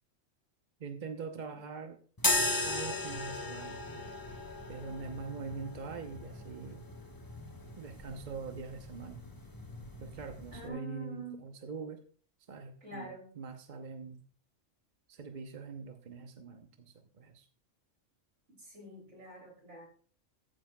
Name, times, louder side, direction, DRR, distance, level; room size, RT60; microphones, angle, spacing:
voice 1, 0.8-2.0 2.4-3.8 4.7-6.9 7.8-9.2 10.0-12.0 12.5-13.1 13.4-14.2 15.1-17.5, right 5 dB, 45° right, 5 dB, 0.9 m, -43 dB
sound 1, 2.2-10.7, left 2 dB, 20° left, 1.0 m, -37 dB
voice 2, 10.5-11.4 12.8-13.4 18.5-19.9, right 2 dB, 65° right, 0 dB, 3.4 m, -46 dB
14.0 x 8.5 x 2.2 m, 0.44 s
omnidirectional pair, 1.3 m